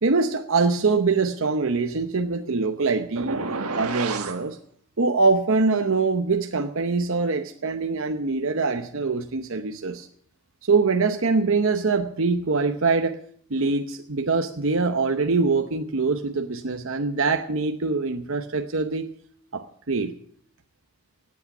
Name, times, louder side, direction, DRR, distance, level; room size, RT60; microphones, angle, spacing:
voice 1, 0.0-3.4 3.8-4.6 5.0-10.1 10.6-13.2 13.5-19.1 19.5-20.2, right 4 dB, 65° right, 6 dB, 0.8 m, -23 dB
sound 1, 3.2-4.4, right 4 dB, 85° right, 1.5 m, -29 dB
17.5 x 8.5 x 7.1 m, 0.62 s
head